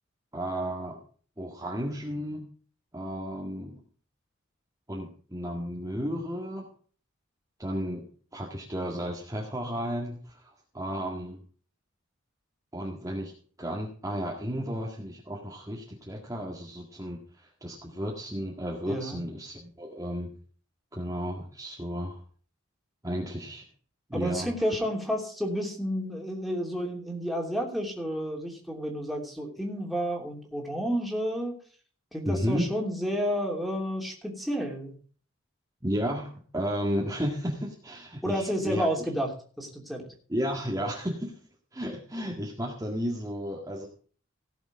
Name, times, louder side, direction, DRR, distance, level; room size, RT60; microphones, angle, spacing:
voice 1, 0.3-1.0 1.4-2.5 2.9-3.8 4.9-6.6 7.6-8.0 8.3-10.5 10.7-11.4 12.7-13.3 13.6-20.3 20.9-22.2 23.0-23.7 24.1-24.5 32.2-32.6 35.8-38.9 40.3-41.3 41.7-43.9, equal, 15° right, -2 dB, 1.9 m, -33 dB
voice 2, 18.9-19.2 24.1-31.5 32.1-34.9 38.2-39.3 39.6-40.0, equal, ahead, 0 dB, 3.0 m, -31 dB
17.0 x 7.1 x 4.8 m, 0.44 s
head